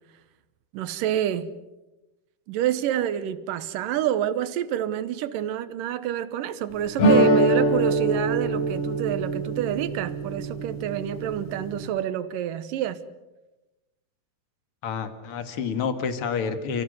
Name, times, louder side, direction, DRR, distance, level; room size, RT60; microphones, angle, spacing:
voice 1, 0.7-1.5 2.5-13.0, right 11 dB, 70° right, 2.4 m, -28 dB
sound 1, 7.0-11.8, right 2 dB, 75° left, 5.7 m, -24 dB
voice 2, 14.8-16.8, left 6 dB, 45° left, 2.1 m, -28 dB
30.0 x 16.5 x 8.1 m
omnidirectional pair, 4.5 m